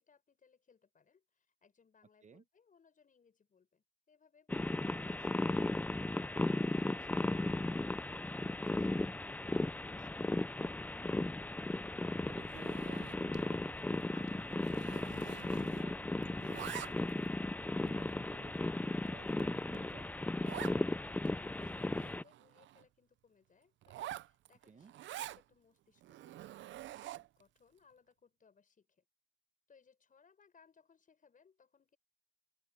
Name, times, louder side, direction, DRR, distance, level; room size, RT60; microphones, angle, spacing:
voice 1, 0.0-10.5 20.9-29.1 29.7-32.0, left 6 dB, 40° left, 6.9 m, -68 dB
sound 1, 4.5-22.2, left 2 dB, 10° left, 0.4 m, -36 dB
voice 2, 11.3-12.0 12.3-20.1 24.7-24.9, right 6 dB, 35° right, 1.1 m, -57 dB
Zipper (clothing), 12.5-13.5 13.8-14.0 14.3-16.0 16.2-17.3 17.9-18.0 18.6-18.7 19.1-19.2 19.4-19.5 19.7-19.8 20.4-20.8 21.2-21.3 21.5-22.8 23.8-25.4 26.0-27.4, right 13 dB, 70° right, 0.6 m, -47 dB
open air
cardioid pair, 90°, 20 cm